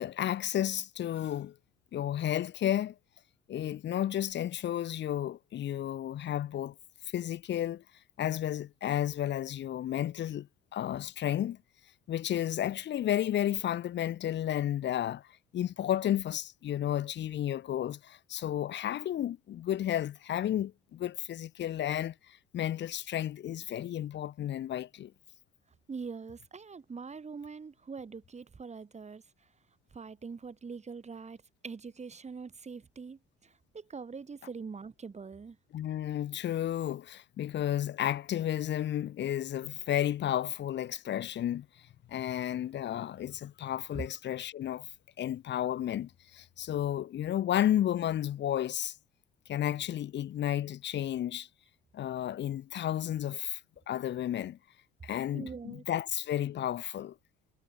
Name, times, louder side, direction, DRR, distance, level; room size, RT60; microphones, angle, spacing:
voice 1, 0.0-1.5 1.9-2.9 3.5-6.7 7.1-7.8 8.2-10.5 10.7-11.6 12.1-15.2 15.5-25.1 35.7-41.7 42.1-44.9 45.2-48.9 49.5-51.5 51.9-53.6 53.9-54.6 55.0-57.1, left 11 dB, 60° left, 2.7 m, -32 dB
voice 2, 25.9-29.5 29.9-35.6 43.9-44.1 55.3-55.8, right 5 dB, 30° right, 6.9 m, -43 dB
hypercardioid pair, 65°, 21 cm